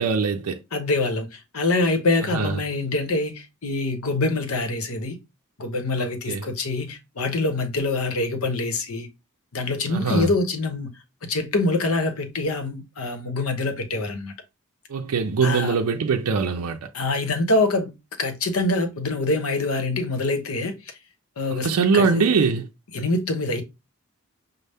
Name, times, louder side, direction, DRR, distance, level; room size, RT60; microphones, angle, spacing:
voice 1, 0.0-0.6 2.3-2.6 6.0-6.5 9.9-10.3 14.9-16.9 21.5-22.7, right 5 dB, 85° right, 0.4 m, -22 dB
voice 2, 0.7-5.2 5.6-9.1 9.5-10.9 11.3-14.3 15.4-15.7 16.9-17.9 18.2-20.8 21.4-22.3 22.9-23.6, left 2 dB, 70° left, 0.8 m, -25 dB
5.3 x 2.0 x 3.4 m
head